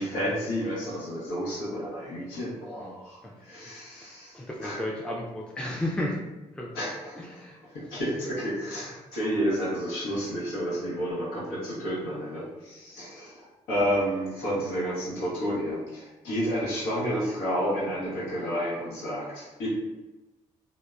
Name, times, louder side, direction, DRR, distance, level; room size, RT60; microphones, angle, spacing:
voice 1, 0.0-4.8 6.7-7.4 7.7-19.7, equal, 85° left, -7 dB, 0.9 m, -31 dB
voice 2, 3.9-6.2 6.6-6.7 7.2-7.6, left 1 dB, 5° left, -3 dB, 0.4 m, -33 dB
2.8 x 2.0 x 2.3 m, 1.1 s
hypercardioid pair, 50°, 16 cm